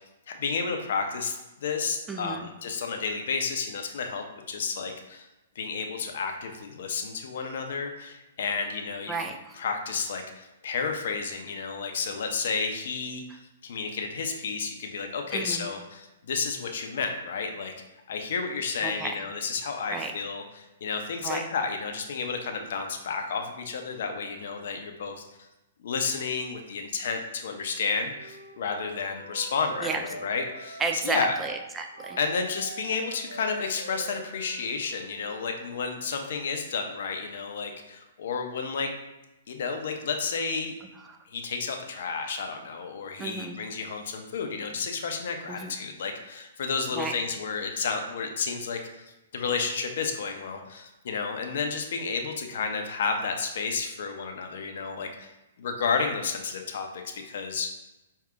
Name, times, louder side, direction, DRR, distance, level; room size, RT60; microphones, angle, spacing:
voice 1, 0.4-5.3 5.6-17.7 18.1-25.2 25.8-31.3 32.2-38.9 39.5-40.8 41.3-55.3 55.6-57.7, left 5 dB, 60° left, 4 dB, 0.5 m, -31 dB
voice 2, 2.1-2.5 9.1-9.5 15.3-15.7 18.8-19.2 19.9-20.1 21.2-21.5 29.8-30.0 30.8-32.2 41.1-41.2 43.2-43.6 45.5-45.7 46.9-47.2, right 4 dB, 15° right, 4 dB, 0.4 m, -32 dB
Wind instrument woodwind instrument, 28.1-35.6, right 1 dB, 85° right, 1.1 m, -43 dB
4.6 x 2.7 x 2.4 m, 0.97 s
hypercardioid pair, 125°, 0 cm